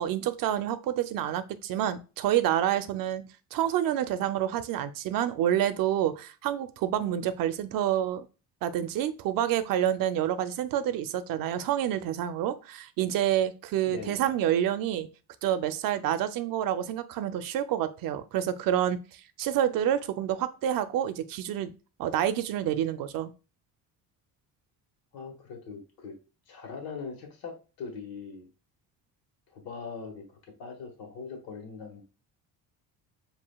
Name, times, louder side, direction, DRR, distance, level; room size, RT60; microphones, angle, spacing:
voice 1, 0.0-3.2 3.5-8.2 8.6-15.1 15.4-21.7 22.0-23.3, right 11 dB, 65° right, 11 dB, 0.6 m, -28 dB
voice 2, 13.9-14.3 25.1-26.1 26.5-28.5 29.5-30.2 30.6-32.0, left 5 dB, 75° left, 3 dB, 1.5 m, -41 dB
7.4 x 2.8 x 2.3 m, 0.32 s
cardioid pair, 135°, 36 cm